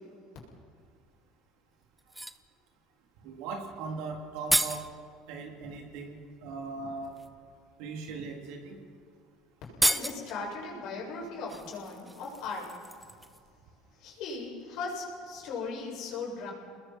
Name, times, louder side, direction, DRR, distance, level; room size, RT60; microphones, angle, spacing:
sound 1, 1.1-1.2 2.0-2.5 3.9-4.9 6.3-6.4 7.0-7.3 8.2-8.3 8.6-8.8 9.0-9.1 9.6-10.4 11.5-13.5 13.8-13.9, right 1 dB, 5° right, 0.9 m, -31 dB
voice 1, 3.2-4.8 5.3-7.1 7.8-8.8, right 4 dB, 75° right, 1 dB, 3.6 m, -39 dB
voice 2, 9.8-12.7 14.0-16.5, left 4 dB, 65° left, -3 dB, 7.4 m, -38 dB
29.0 x 20.5 x 4.7 m, 2.2 s
supercardioid pair, 85°, 0 cm